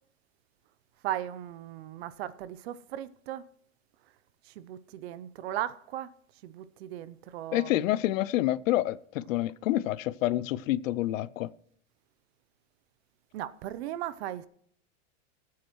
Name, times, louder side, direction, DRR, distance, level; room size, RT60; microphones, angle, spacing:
voice 1, 1.0-3.4 4.6-6.1 6.4-7.7 13.3-14.5, right 12 dB, 55° right, 0.6 m, -37 dB
voice 2, 7.5-11.5, left 15 dB, 80° left, 0.6 m, -28 dB
18.5 x 8.6 x 3.1 m
supercardioid pair, 165°, 39 cm